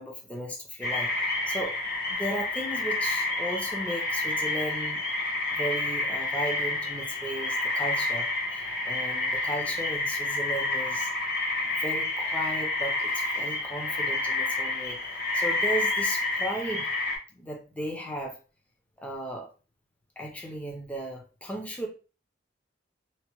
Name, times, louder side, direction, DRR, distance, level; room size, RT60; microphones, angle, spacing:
voice 1, 0.0-1.8 2.1-5.0 5.5-11.1 11.6-16.9 17.3-18.4 19.0-19.5 20.2-21.9, right 1 dB, 10° left, 1 dB, 0.5 m, -35 dB
sound 1, 0.8-17.2, left 2 dB, 50° left, 0.9 m, -29 dB
2.8 x 2.1 x 2.9 m, 0.34 s
head